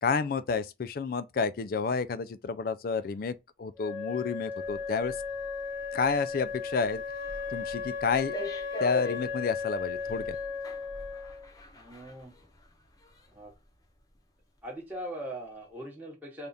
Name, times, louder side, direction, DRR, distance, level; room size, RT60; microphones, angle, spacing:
voice 1, 0.0-5.1 5.9-7.0 7.5-8.5 8.8-10.4, left 5 dB, 50° left, 0.3 m, -30 dB
Wind instrument woodwind instrument, 3.8-11.5, left 5 dB, 85° left, 1.1 m, -36 dB
sound 1, 4.6-13.7 14.0-14.2, left 3 dB, 20° left, 0.7 m, -43 dB
voice 2, 11.7-12.3 13.3-13.5 14.6-16.5, right 1 dB, 10° right, 0.9 m, -40 dB
3.4 x 2.4 x 4.0 m
head